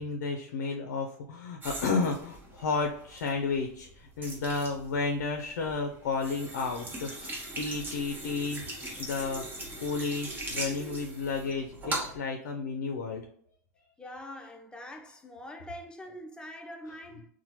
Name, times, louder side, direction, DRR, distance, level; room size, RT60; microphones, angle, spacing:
voice 1, 0.0-8.6 9.0-9.4 9.8-13.2, left 4 dB, 80° left, 0.4 m, -32 dB
sound 1, 1.6-12.2, right 1 dB, 20° right, 0.9 m, -40 dB
voice 2, 14.0-17.3, left 1 dB, 10° left, 0.4 m, -44 dB
2.9 x 2.1 x 2.8 m
hypercardioid pair, 120°, 9 cm